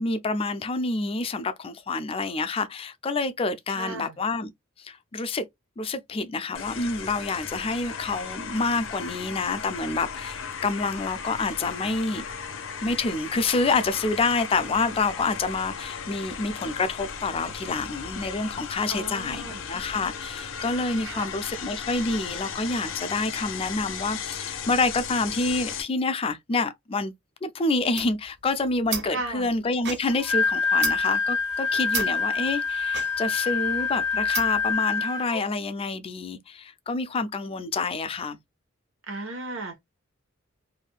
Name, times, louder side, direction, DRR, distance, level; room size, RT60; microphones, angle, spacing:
voice 1, 0.0-4.5 4.8-5.4 5.8-12.2 12.8-27.1 27.4-38.4, left 3 dB, 25° left, 0.4 m, -28 dB
voice 2, 3.7-4.2 18.9-19.7 21.0-21.3 29.0-29.5 39.1-39.8, right 2 dB, 80° right, 1.2 m, -35 dB
sound 1, 6.5-25.8, left 6 dB, 70° left, 0.6 m, -36 dB
sound 2, 27.8-34.8, right 7 dB, 55° right, 0.7 m, -36 dB
Wind instrument woodwind instrument, 30.1-35.4, left 5 dB, 5° right, 0.8 m, -26 dB
3.3 x 2.6 x 2.3 m
head